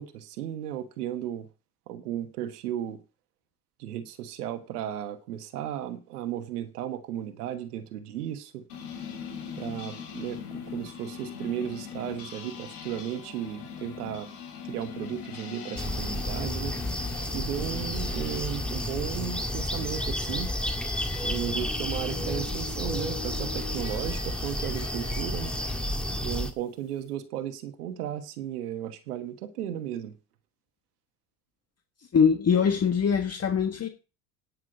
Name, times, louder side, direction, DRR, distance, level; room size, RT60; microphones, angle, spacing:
voice 1, 0.0-1.5 1.9-3.0 3.8-8.6 9.5-10.4 10.7-14.3 14.6-16.8 17.2-20.5 21.2-25.5 26.2-30.1, right 11 dB, 90° right, 1.3 m, -35 dB
sound 1, 8.7-25.9, left 7 dB, 85° left, 3.2 m, -42 dB
sound 2, 15.8-26.5, left 1 dB, ahead, 2.0 m, -31 dB
voice 2, 32.1-33.9, left 6 dB, 35° left, 1.6 m, -23 dB
10.0 x 6.0 x 7.8 m
hypercardioid pair, 75°, 45 cm